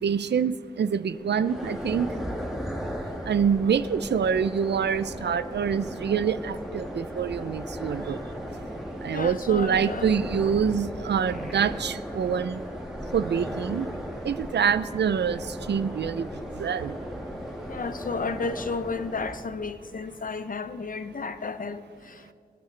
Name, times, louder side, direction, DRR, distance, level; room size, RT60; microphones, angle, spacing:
voice 1, 0.0-2.2 3.2-8.3 9.0-12.6 13.1-17.0, right 7 dB, 80° right, 15 dB, 0.4 m, -26 dB
sound 1, 1.1-19.4, equal, ahead, 1.8 m, -36 dB
voice 2, 9.1-10.2 17.7-22.3, left 4 dB, 55° left, 13 dB, 0.6 m, -33 dB
24.5 x 9.3 x 3.3 m, 2.4 s
cardioid pair, 55°, 17 cm